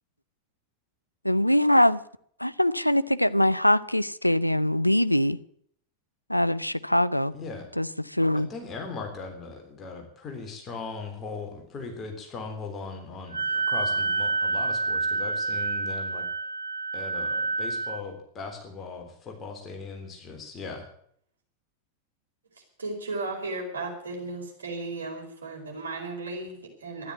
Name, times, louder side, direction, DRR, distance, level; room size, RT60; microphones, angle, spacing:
voice 1, 1.2-2.0 2.4-5.4 6.3-7.3 7.8-7.9 8.2-8.5, left 1 dB, 90° left, 0.5 m, -22 dB
voice 2, 7.3-7.7 8.3-16.2 16.9-20.9, left 4 dB, 25° left, 3.6 m, -39 dB
Wind instrument woodwind instrument, 13.3-18.0, right 3 dB, 85° right, 1.1 m, -28 dB
voice 3, 22.8-27.1, right 2 dB, 70° right, 4.7 m, -35 dB
13.0 x 11.0 x 9.1 m
figure-of-eight pair, 90°, 0 cm